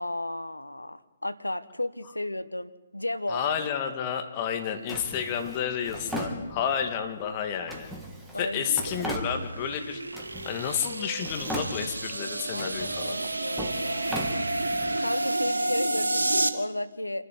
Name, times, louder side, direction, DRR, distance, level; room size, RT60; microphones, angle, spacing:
voice 1, 0.0-3.4 8.3-8.8 12.5-14.1 15.0-17.3, left 1 dB, 90° left, 13 dB, 1.2 m, -34 dB
voice 2, 3.3-7.9 8.4-10.0 10.4-13.2, left 8 dB, 30° left, 6 dB, 2.4 m, -31 dB
Drawer open or close, 4.9-7.0 7.7-9.8 10.1-10.9 11.2-12.1 12.5-15.0, right 1 dB, 5° right, 2.7 m, -37 dB
sound 1, 8.5-16.5, right 2 dB, 75° right, 2.0 m, -30 dB
27.0 x 12.5 x 9.6 m, 1.2 s
figure-of-eight pair, 135°, 0 cm